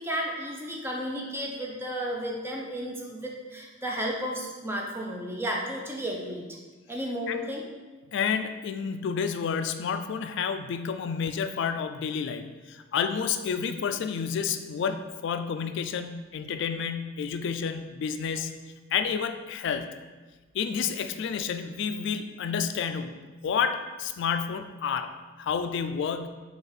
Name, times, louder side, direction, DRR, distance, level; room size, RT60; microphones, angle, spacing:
voice 1, 0.0-6.5 6.9-7.6, equal, 10° right, -1 dB, 0.6 m, -33 dB
voice 2, 8.1-18.5 18.9-19.9 20.5-25.1 25.4-26.3, left 6 dB, 60° left, 8 dB, 0.3 m, -30 dB
4.4 x 2.4 x 4.8 m, 1.3 s
head